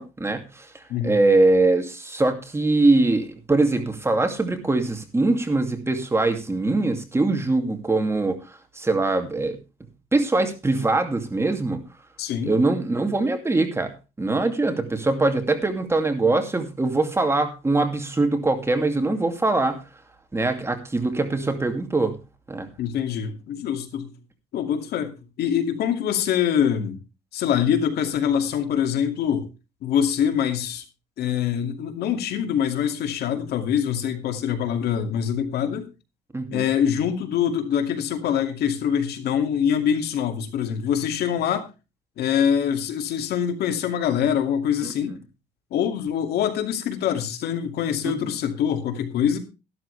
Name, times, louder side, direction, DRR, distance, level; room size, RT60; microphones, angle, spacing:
voice 1, 0.0-8.4 8.8-9.6 10.1-11.8 12.5-19.8 20.3-22.2 22.5-22.7 36.3-36.7 45.1-45.2 48.2-48.3, right 2 dB, 15° right, 2.5 m, -22 dB
voice 2, 12.2-12.5 22.8-24.1 24.5-27.0 27.3-29.5 29.8-30.8 31.2-35.9 36.5-41.7 42.2-45.1 45.7-49.4, left 8 dB, 70° left, 2.5 m, -24 dB
13.5 x 12.5 x 3.4 m
cardioid pair, 110°, 17 cm